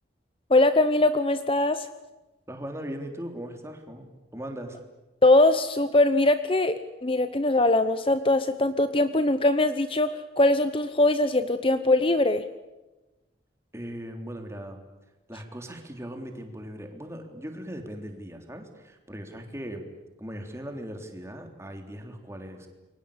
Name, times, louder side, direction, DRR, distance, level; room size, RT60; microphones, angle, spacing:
voice 1, 0.5-1.9 5.2-12.4, left 2 dB, 30° left, 11 dB, 0.9 m, -22 dB
voice 2, 2.5-4.8 13.7-14.8 15.3-19.8 20.2-22.7, equal, 15° right, 4 dB, 3.6 m, -39 dB
28.5 x 23.5 x 8.7 m, 1.1 s
head